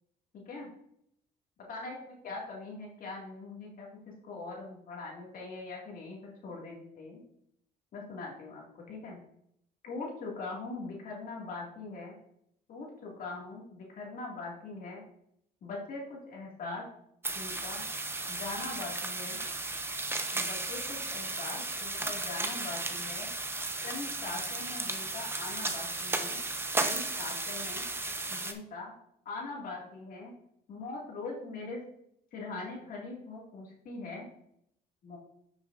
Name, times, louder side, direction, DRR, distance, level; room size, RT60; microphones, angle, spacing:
voice 1, 1.7-3.9 4.2-7.2 7.9-9.2 9.8-12.2 12.7-15.0 15.6-16.9 17.3-17.8 18.3-19.4 20.3-23.3 23.8-26.4 26.8-27.8 28.3-28.9 29.3-30.3 30.7-31.8 32.3-34.3 35.0-35.2, left 3 dB, 55° left, -2 dB, 2.1 m, -42 dB
sound 1, 17.2-28.5, right 2 dB, 15° right, 0.8 m, -35 dB
9.9 x 6.3 x 2.5 m, 0.73 s
cardioid pair, 110°, 17 cm